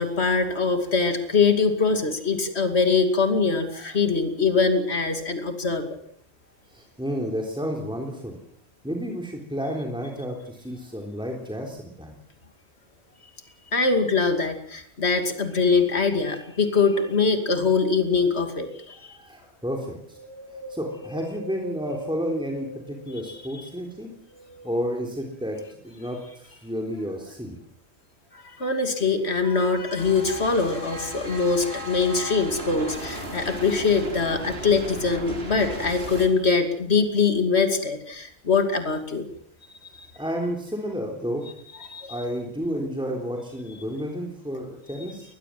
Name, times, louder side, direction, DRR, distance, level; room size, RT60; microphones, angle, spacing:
voice 1, 0.0-5.8 13.7-19.2 28.3-39.3 39.9-40.1 41.9-42.2, left 4 dB, 80° left, 7 dB, 2.9 m, -23 dB
voice 2, 6.7-8.3 8.8-12.2 19.1-20.2 20.7-24.1 24.6-25.6 25.8-27.6 40.1-41.5 42.1-45.3, equal, 5° right, 1 dB, 3.6 m, -31 dB
Wind, 20.1-23.7 24.2-25.5 26.0-26.1, right 2 dB, 15° left, 5.8 m, -41 dB
sound 1, 30.0-36.3, equal, 70° right, 4.3 m, -36 dB
22.0 x 20.5 x 7.7 m, 0.65 s
omnidirectional pair, 1.1 m